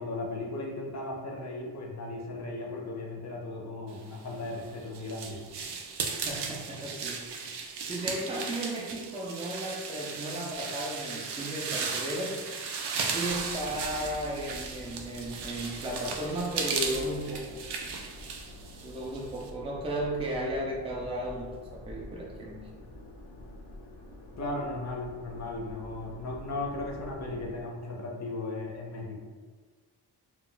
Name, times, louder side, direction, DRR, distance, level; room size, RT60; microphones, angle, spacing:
voice 1, 0.0-5.4 24.4-29.2, left 2 dB, 45° left, -2 dB, 0.5 m, -36 dB
sound 1, 4.3-19.5, right 5 dB, 80° right, 0.5 m, -36 dB
voice 2, 6.0-12.4 13.0-17.6 18.8-22.7, right 1 dB, 15° right, -2 dB, 0.3 m, -35 dB
sound 2, 13.3-27.7, left 1 dB, 85° left, 0.6 m, -47 dB
2.2 x 2.2 x 3.7 m, 1.5 s
wide cardioid pair, 175°, 40 cm